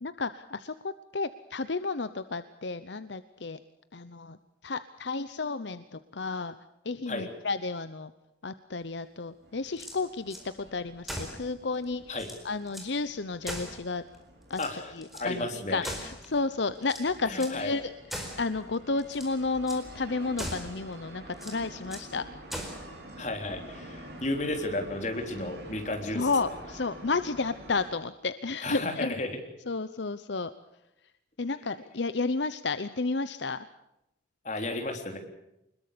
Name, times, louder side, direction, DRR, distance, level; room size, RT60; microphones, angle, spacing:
voice 1, 0.0-3.6 3.9-4.4 4.6-6.5 6.8-8.1 8.4-12.2 12.4-14.0 14.5-14.6 14.9-22.3 26.1-29.1 29.7-30.5 31.4-33.6, left 3 dB, 70° left, 13 dB, 0.8 m, -32 dB
sound 1, 9.4-27.9, right 1 dB, 60° right, 6.2 m, -48 dB
sound 2, 9.7-10.5 11.0-11.4 11.8-11.9 12.1-12.9 13.4-14.2 14.5-15.3 15.8-16.4 16.8-17.6 18.1-18.5 19.0-19.4 19.7-19.9 20.4-20.8 21.3-22.1 22.5-22.9, equal, ahead, 4.5 m, -40 dB
voice 2, 14.6-15.9 17.2-17.7 23.2-26.5 28.6-29.4 34.4-35.2, left 2 dB, 40° left, 4 dB, 3.7 m, -33 dB
25.5 x 21.5 x 6.9 m, 0.86 s
head